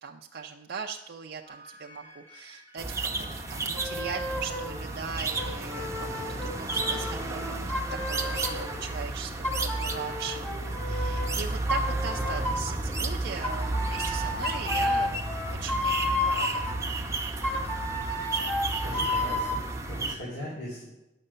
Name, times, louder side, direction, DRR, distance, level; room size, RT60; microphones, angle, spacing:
voice 1, 0.0-7.7 8.1-15.2 15.5-16.6, right 6 dB, 60° right, 1 dB, 0.5 m, -39 dB
sound 1, 1.4-20.3, equal, 35° left, 3.5 m, -52 dB
sound 2, 2.8-20.1, right 2 dB, 15° right, 0.7 m, -32 dB
sound 3, 3.8-4.8 5.3-8.8 9.4-11.3 11.7-12.8 13.4-16.7 17.4-19.6, left 1 dB, 10° left, 1.5 m, -32 dB
voice 2, 18.8-20.8, left 1 dB, 75° left, -5 dB, 3.1 m, -39 dB
9.9 x 6.5 x 6.6 m, 0.96 s
head